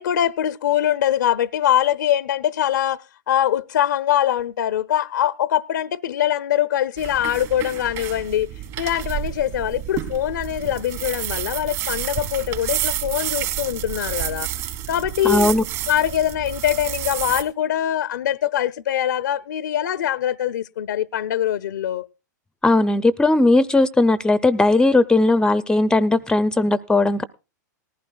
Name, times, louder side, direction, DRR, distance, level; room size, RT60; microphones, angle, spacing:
voice 1, 0.0-8.5 8.8-14.5 14.9-15.5 15.9-22.1, left 11 dB, 80° left, 0.6 m, -23 dB
sound 1, 7.0-17.4, right 13 dB, 50° right, 3.1 m, -30 dB
voice 2, 15.2-15.6 22.6-27.2, left 2 dB, 10° left, 0.5 m, -17 dB
19.0 x 15.0 x 2.3 m
hypercardioid pair, 115°, 10 cm